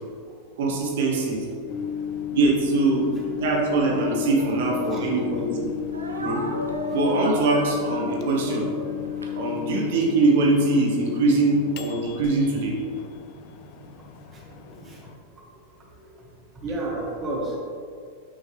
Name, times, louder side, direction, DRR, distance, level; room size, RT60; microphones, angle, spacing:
voice 1, 0.6-1.4 2.3-5.7 6.2-6.4 6.9-8.7 9.4-12.7, right 3 dB, 55° right, -1 dB, 1.5 m, -22 dB
Microwave oven, 1.7-15.1, left 10 dB, 45° left, 0.5 m, -33 dB
Speech, 3.7-5.3 5.9-10.0, right 1 dB, 75° right, 0.8 m, -36 dB
voice 2, 16.6-17.6, right 2 dB, 25° right, -2 dB, 1.4 m, -31 dB
9.0 x 5.6 x 3.1 m, 2.2 s
figure-of-eight pair, 90°, 0 cm